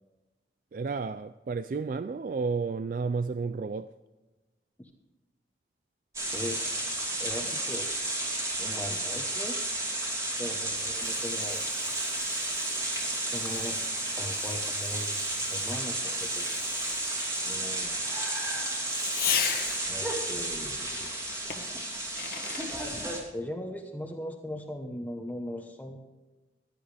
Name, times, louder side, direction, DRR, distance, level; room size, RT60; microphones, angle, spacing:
voice 1, 0.7-3.9, right 4 dB, 50° right, 0.3 m, -32 dB
sound 1, 6.1-23.2, right 1 dB, 20° right, 2.6 m, -32 dB
voice 2, 6.3-6.7 7.2-7.9 8.6-9.6 10.4-11.6 13.3-13.8 14.2-15.2 15.5-16.6 17.5-17.9 19.9-21.1 23.3-26.0, equal, 10° left, 1.0 m, -39 dB
Fireworks, 10.1-20.1 21.5-22.8, left 8 dB, 55° left, 1.4 m, -38 dB
15.5 x 11.0 x 3.4 m
head